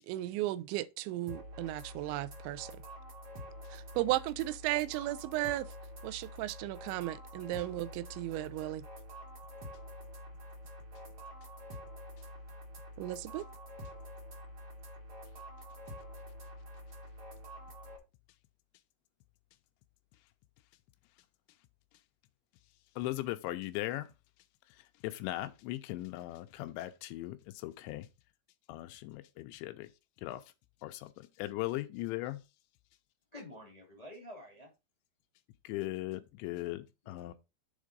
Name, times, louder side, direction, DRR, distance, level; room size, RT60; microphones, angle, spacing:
voice 1, 0.1-2.7 3.7-5.7 6.0-8.8 13.0-13.4, right 16 dB, 85° right, 2.8 m, -35 dB
sound 1, 1.3-18.0, equal, 60° right, 1.3 m, -47 dB
voice 2, 23.0-24.1 25.0-28.1 28.7-29.9 30.2-30.4 30.8-32.4 35.6-37.3, left 17 dB, 85° left, 2.8 m, -38 dB
voice 3, 33.3-34.7 37.0-37.3, left 1 dB, 25° left, 0.7 m, -49 dB
7.3 x 3.7 x 5.1 m
omnidirectional pair, 5.2 m